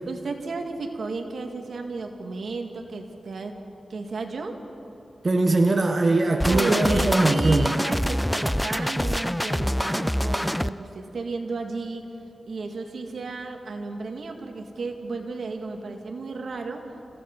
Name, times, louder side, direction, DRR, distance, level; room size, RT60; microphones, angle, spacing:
voice 1, 0.1-3.6 3.9-4.6 6.5-12.1 12.5-16.8, right 3 dB, 75° right, 4 dB, 2.1 m, -33 dB
voice 2, 5.2-7.7, right 2 dB, 45° right, 3 dB, 1.4 m, -21 dB
sound 1, 6.4-10.7, equal, 5° left, 0.5 m, -25 dB
29.5 x 16.5 x 5.4 m, 2.9 s
cardioid pair, 70°, 0 cm